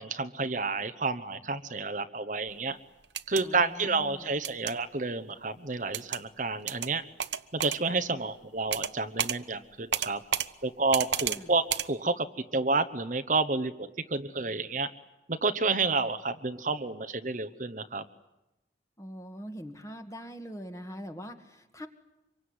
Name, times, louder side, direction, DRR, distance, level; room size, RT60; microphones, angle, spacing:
voice 1, 0.0-2.8 3.3-7.1 7.5-10.2 10.6-12.3 12.5-14.9 15.3-18.0, right 3 dB, 45° right, 11 dB, 1.0 m, -30 dB
sound 1, 3.0-3.4 4.4-4.7 5.9-6.2 6.7-6.9 7.2-7.8 8.7-8.9 9.2-9.4 9.9-10.5 10.9-11.4 11.7-11.9, right 9 dB, 75° right, 1.0 m, -31 dB
voice 2, 3.4-4.4 11.3-11.5 19.0-21.9, equal, 15° left, 7 dB, 1.9 m, -43 dB
26.0 x 23.5 x 9.7 m, 0.96 s
head